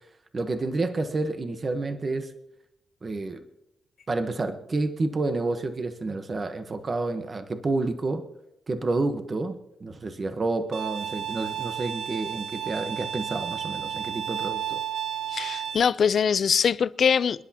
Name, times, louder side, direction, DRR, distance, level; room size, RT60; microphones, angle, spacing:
voice 1, 0.3-2.3 3.0-3.4 4.1-8.2 8.7-14.8, right 3 dB, 30° right, 1.1 m, -29 dB
Bowed string instrument, 10.7-15.8, right 10 dB, 80° right, 0.9 m, -32 dB
voice 2, 15.3-17.5, left 7 dB, 50° left, 0.5 m, -23 dB
28.0 x 10.5 x 2.9 m
wide cardioid pair, 140°, 0 cm